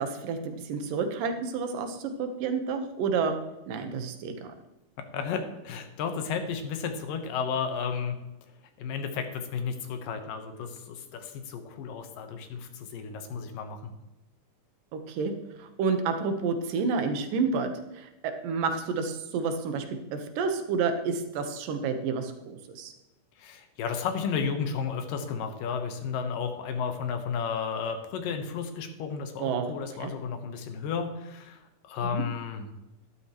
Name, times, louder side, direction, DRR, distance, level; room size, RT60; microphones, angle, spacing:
voice 1, 0.0-3.3 3.7-4.5 14.9-15.3 15.6-22.9 29.4-29.7 30.0-30.1 32.0-32.2, right 5 dB, 85° right, 7 dB, 2.8 m, -30 dB
voice 2, 5.1-8.2 8.8-13.9 23.4-32.7, left 6 dB, 80° left, 6 dB, 2.8 m, -33 dB
12.5 x 12.0 x 3.0 m, 1.0 s
omnidirectional pair, 3.8 m